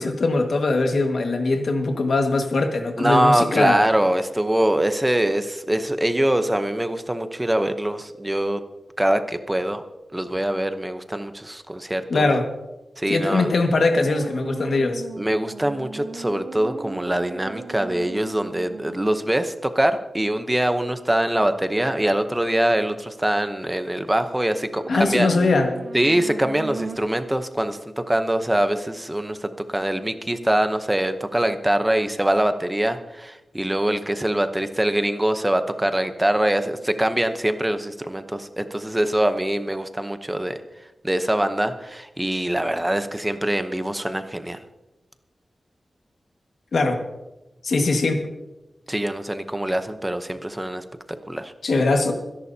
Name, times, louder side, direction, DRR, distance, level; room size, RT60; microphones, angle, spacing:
voice 1, 0.0-3.9 12.1-12.5 13.1-15.0 24.9-25.7 46.7-47.0 47.6-48.3 51.6-52.1, left 3 dB, 70° left, 4 dB, 1.7 m, -21 dB
voice 2, 3.0-8.6 9.0-9.8 10.1-12.3 13.0-13.5 15.2-25.3 25.9-40.6 41.0-44.6 48.9-51.5, right 1 dB, 10° right, 8 dB, 0.8 m, -23 dB
sound 1, 14.0-19.4 24.7-27.0, right 3 dB, 60° right, 1.7 m, -37 dB
25.5 x 11.0 x 2.8 m, 1.0 s
wide cardioid pair, 130°, 0 cm